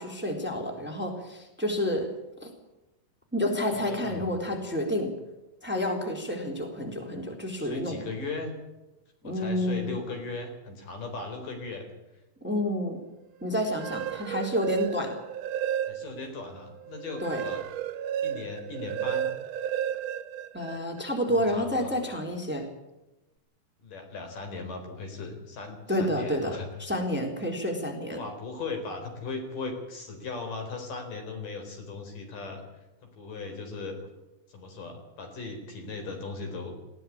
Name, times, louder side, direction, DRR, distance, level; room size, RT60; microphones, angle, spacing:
voice 1, 0.0-2.1 2.4-2.5 3.3-5.1 5.6-8.0 9.2-9.9 12.4-13.0 13.4-15.1 17.2-17.4 20.5-22.6 25.9-28.2, left 1 dB, 5° right, 3 dB, 3.4 m, -29 dB
voice 2, 3.7-4.4 7.5-8.5 9.2-11.9 15.9-17.6 18.2-19.3 21.4-21.9 23.8-26.7 28.1-32.6 33.0-34.0 34.5-36.8, left 3 dB, 70° left, 5 dB, 5.8 m, -38 dB
sound 1, 13.6-16.3 16.7-21.1, right 10 dB, 75° right, 1.6 m, -33 dB
20.0 x 16.0 x 8.6 m, 1.0 s
omnidirectional pair, 3.9 m